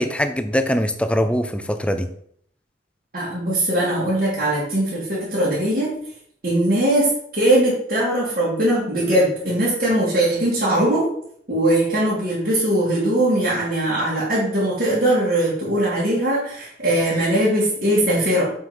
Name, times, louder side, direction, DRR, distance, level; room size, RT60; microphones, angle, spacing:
voice 1, 0.0-2.1, equal, 5° left, 9 dB, 0.5 m, -22 dB
voice 2, 3.1-5.9 6.4-11.1 11.5-18.5, right 1 dB, 55° right, -10 dB, 3.0 m, -20 dB
7.6 x 5.5 x 4.6 m, 0.66 s
head